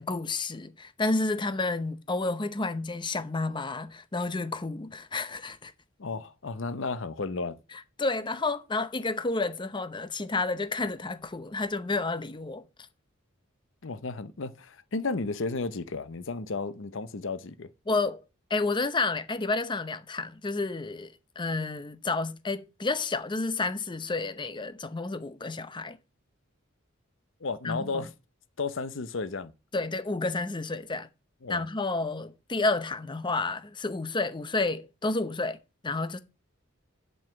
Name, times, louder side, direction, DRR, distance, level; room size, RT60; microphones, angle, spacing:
voice 1, 0.0-5.7 8.0-12.6 17.9-18.2 18.5-26.0 27.6-28.0 29.7-31.1 31.5-35.6 35.8-36.2, left 3 dB, 25° left, 0.7 m, -30 dB
voice 2, 6.0-7.6 13.8-17.7 27.4-28.1 28.6-29.5 31.4-31.6, left 3 dB, 65° left, 0.8 m, -33 dB
7.6 x 5.5 x 7.5 m
head